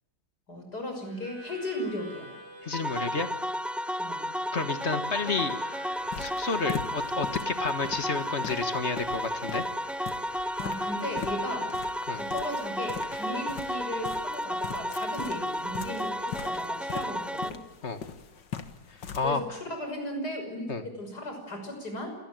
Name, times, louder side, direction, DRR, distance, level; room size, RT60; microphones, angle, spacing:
voice 1, 0.5-2.3 4.0-4.3 10.6-11.7 12.1-17.6 19.2-22.1, left 1 dB, 65° left, 4 dB, 6.6 m, -36 dB
Harmonica, 1.0-13.6, right 1 dB, 85° right, 7.1 m, -50 dB
voice 2, 2.6-3.3 4.5-5.6 6.2-9.7 12.1-12.2 17.8-18.0 18.9-19.4 20.7-20.8, left 4 dB, 40° left, 10 dB, 1.7 m, -31 dB
sound 1, 2.7-17.5, equal, ahead, 0.3 m, -33 dB
sound 2, 5.9-19.3, left 7 dB, 90° left, 2.2 m, -42 dB
27.5 x 18.5 x 9.3 m, 1.2 s
omnidirectional pair, 1.9 m